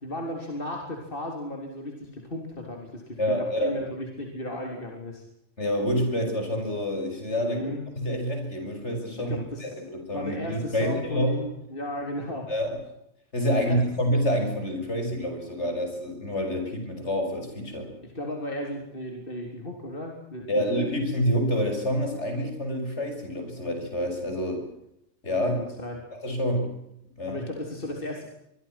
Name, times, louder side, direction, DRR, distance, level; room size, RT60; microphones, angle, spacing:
voice 1, 0.0-5.2 7.4-7.8 9.2-9.7 10.1-12.5 13.5-13.8 18.0-20.6 25.4-26.0 27.3-28.2, left 1 dB, 50° left, 2 dB, 4.1 m, -35 dB
voice 2, 3.2-3.8 5.6-7.6 8.0-11.3 12.5-12.8 13.3-17.9 20.5-24.6 25.2-25.6 26.1-26.8 27.2-27.4, equal, 75° left, 4 dB, 6.9 m, -27 dB
25.5 x 23.5 x 6.0 m, 0.79 s
omnidirectional pair, 1.2 m